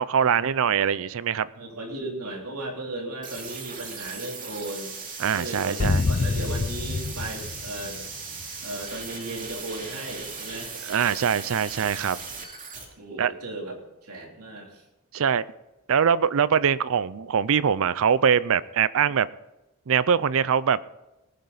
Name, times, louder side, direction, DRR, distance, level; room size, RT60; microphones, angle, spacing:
voice 1, 0.0-1.5 5.2-6.0 10.8-12.2 13.2-13.3 15.1-15.4 15.9-19.3 19.9-20.8, right 7 dB, 65° right, 18 dB, 0.5 m, -23 dB
voice 2, 1.5-5.0 5.3-8.0 8.6-10.7 13.0-14.8, right 2 dB, 90° right, 1 dB, 3.2 m, -36 dB
sound 1, 3.2-12.8, right 4 dB, 35° right, 2.6 m, -38 dB
sound 2, 5.8-8.5, left 3 dB, 35° left, 0.4 m, -27 dB
19.0 x 10.5 x 4.1 m, 0.98 s
head